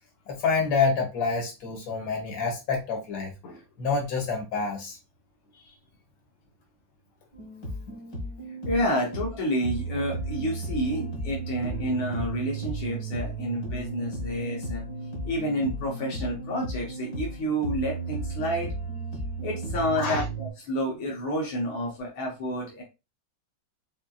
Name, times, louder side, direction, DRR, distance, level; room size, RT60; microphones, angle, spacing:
voice 1, 0.3-5.0 7.9-8.0 20.0-20.2, left 5 dB, 75° left, 0 dB, 2.2 m, -28 dB
sound 1, 7.3-20.5, right 2 dB, 55° left, 2.0 m, -34 dB
voice 2, 8.7-14.8 15.3-18.7 19.4-22.8, equal, 90° left, -2 dB, 2.0 m, -29 dB
5.8 x 2.8 x 2.4 m, 0.26 s
omnidirectional pair, 2.1 m